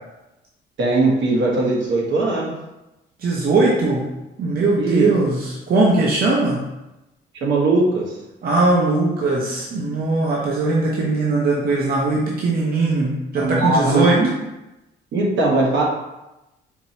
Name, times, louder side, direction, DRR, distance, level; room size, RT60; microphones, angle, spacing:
voice 1, 0.8-2.5 4.8-5.1 7.4-8.0 13.4-14.3 15.1-15.8, right 2 dB, 70° right, -2 dB, 1.0 m, -19 dB
voice 2, 3.2-4.0 4.4-6.7 8.4-14.2, right 2 dB, 50° right, -3 dB, 0.6 m, -20 dB
4.5 x 2.0 x 2.7 m, 0.98 s
cardioid pair, 90°, 20 cm